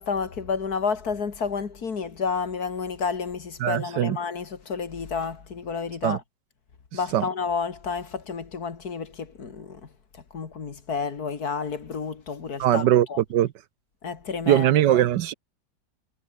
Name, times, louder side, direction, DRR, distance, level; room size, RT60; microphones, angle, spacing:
voice 1, 0.0-6.2 6.9-9.9 10.3-13.2 14.0-15.0, left 5 dB, 55° left, 2.5 m, -30 dB
voice 2, 3.6-4.2 6.0-6.2 7.1-7.2 12.6-13.5 14.5-15.3, right 12 dB, 75° right, 1.3 m, -21 dB
omnidirectional pair, 2.0 m